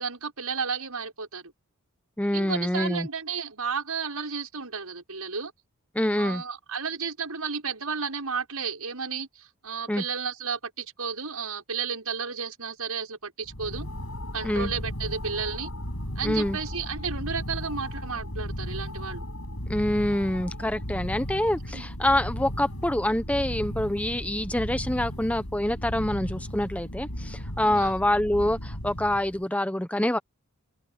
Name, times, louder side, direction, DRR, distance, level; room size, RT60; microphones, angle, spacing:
voice 1, 0.0-1.5 2.3-5.5 6.2-13.9 14.3-15.7 16.2-19.3 21.7-21.9 27.6-27.9, right 5 dB, 80° right, 6.3 m, -33 dB
voice 2, 2.2-3.1 5.9-6.4 9.9-10.0 14.4-14.7 16.2-16.6 19.7-30.2, left 1 dB, 5° left, 0.8 m, -26 dB
sound 1, 13.4-29.4, equal, 70° left, 7.4 m, -35 dB
open air
head